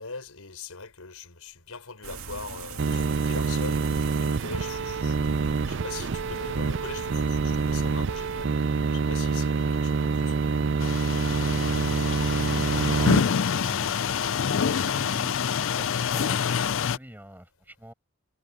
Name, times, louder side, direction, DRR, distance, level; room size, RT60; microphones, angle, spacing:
voice 1, 0.0-5.3 5.6-8.5 8.9-10.6, left 4 dB, 75° left, 4.9 m, -41 dB
sound 1, 2.0-8.5, right 3 dB, 70° right, 2.5 m, -40 dB
sound 2, 2.8-13.2, right 4 dB, 55° right, 0.5 m, -26 dB
sound 3, 10.8-17.0, left 6 dB, 60° left, 0.4 m, -26 dB
voice 2, 11.2-14.0 14.5-17.9, equal, 10° right, 6.1 m, -46 dB
head